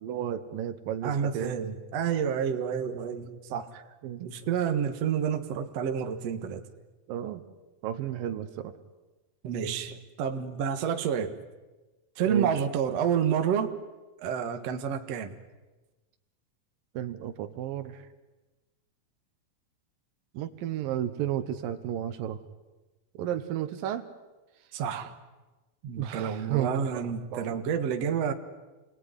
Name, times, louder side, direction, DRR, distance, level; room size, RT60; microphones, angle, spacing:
voice 1, 0.0-1.6 3.7-4.2 7.1-7.4 7.8-8.7 12.3-12.6 16.9-18.1 20.3-22.4 23.1-24.1 26.0-27.6, right 11 dB, 75° right, 10 dB, 2.8 m, -33 dB
voice 2, 1.0-3.7 4.2-6.6 9.4-11.4 12.2-13.8 14.2-15.4 24.7-25.1 25.8-28.3, right 8 dB, 55° right, 6 dB, 2.3 m, -29 dB
28.0 x 20.5 x 9.8 m, 1.2 s
omnidirectional pair, 4.1 m